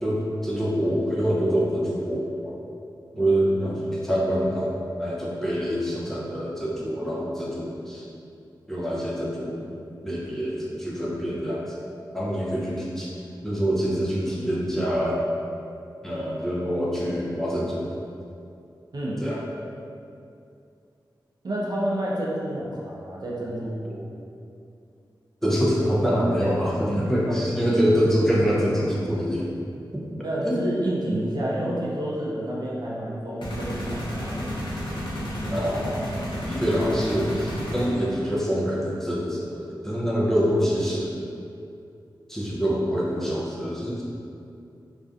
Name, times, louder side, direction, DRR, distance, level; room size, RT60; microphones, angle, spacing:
voice 1, 0.0-2.6 3.2-4.7 5.0-8.0 8.7-9.8 10.0-11.8 12.1-13.1 13.4-15.2 16.0-17.9 19.2-19.4 25.4-29.5 29.9-30.0 30.4-30.5 35.5-36.1 36.5-41.3 42.3-44.0, equal, 5° left, -6 dB, 0.5 m, -25 dB
voice 2, 21.4-24.0 27.3-27.4 30.2-34.5 35.4-35.7, right 1 dB, 55° right, -6 dB, 0.5 m, -29 dB
sound 1, 33.4-38.3, equal, 80° left, 0.6 m, -31 dB
2.4 x 2.2 x 2.5 m, 2.5 s
cardioid pair, 55°, 8 cm